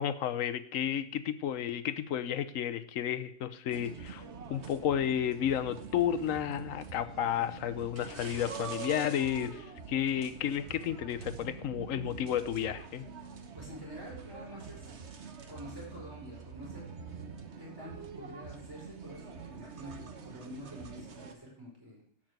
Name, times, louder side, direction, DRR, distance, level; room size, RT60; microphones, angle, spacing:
voice 1, 0.0-4.2 4.5-13.1, left 10 dB, 70° left, 12 dB, 1.1 m, -32 dB
sound 1, 3.7-21.3, right 6 dB, 55° right, 1.4 m, -45 dB
voice 2, 13.5-15.0 15.5-16.9 17.6-22.0, equal, 15° right, -4 dB, 4.8 m, -47 dB
11.5 x 6.1 x 8.0 m, 0.65 s
omnidirectional pair, 1.5 m